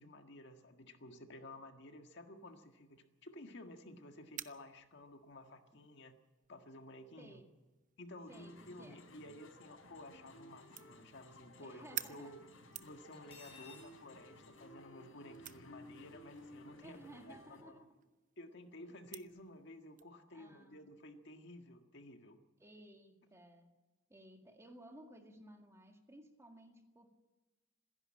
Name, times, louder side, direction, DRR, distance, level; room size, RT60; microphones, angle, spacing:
voice 1, 0.0-6.1 6.5-7.4 8.0-12.4 12.8-17.8 18.4-22.4, left 1 dB, 60° left, 5 dB, 1.7 m, -53 dB
sound 1, 2.3-20.1, right 12 dB, 40° right, 0.8 m, -54 dB
voice 2, 7.2-7.5 8.3-9.0 11.6-12.4 16.8-17.9 18.7-18.9 20.3-20.9 22.6-23.7 24.1-27.1, right 1 dB, 15° right, 4 dB, 2.0 m, -57 dB
sound 2, 8.3-17.6, left 1 dB, 85° left, 4.3 m, -57 dB
Cutlery silverware, 13.1-13.9, left 5 dB, 30° left, 6.1 m, -56 dB
27.0 x 11.0 x 8.7 m, 1.1 s
head